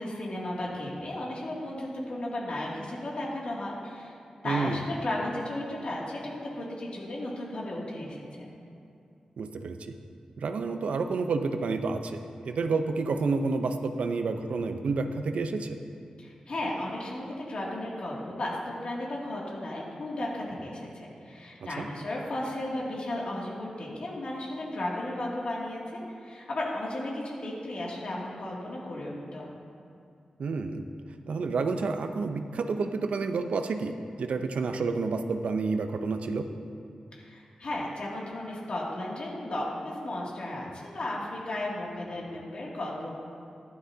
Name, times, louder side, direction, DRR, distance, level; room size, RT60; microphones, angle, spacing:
voice 1, 0.0-4.1 4.4-8.5 16.2-29.5 37.1-43.1, left 1 dB, 55° left, -4 dB, 2.5 m, -35 dB
voice 2, 4.4-4.8 9.4-10.0 10.4-15.8 21.8-21.9 30.4-30.9 31.3-36.5, right 4 dB, 85° right, 7 dB, 0.7 m, -29 dB
15.0 x 11.5 x 2.8 m, 2.6 s
wide cardioid pair, 130°, 2 cm